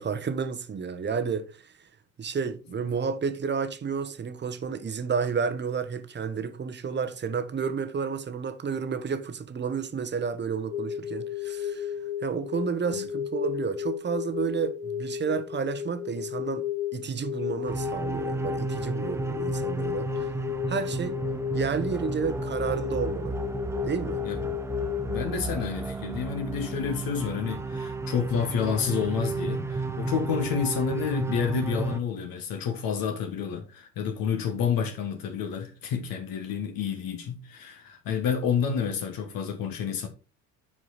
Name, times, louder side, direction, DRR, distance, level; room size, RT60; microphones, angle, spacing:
voice 1, 0.0-1.7 2.2-11.9 12.2-16.7 16.9-20.3 20.7-21.2 21.5-23.4 23.8-24.2, right 6 dB, 25° right, 1.1 m, -31 dB
sound 1, 10.7-25.2, left 10 dB, 80° left, 0.8 m, -33 dB
sound 2, 17.7-32.0, right 3 dB, 5° right, 0.4 m, -33 dB
voice 2, 25.0-40.1, left 7 dB, 45° left, 1.3 m, -29 dB
7.8 x 4.7 x 4.0 m
figure-of-eight pair, 65°, 46 cm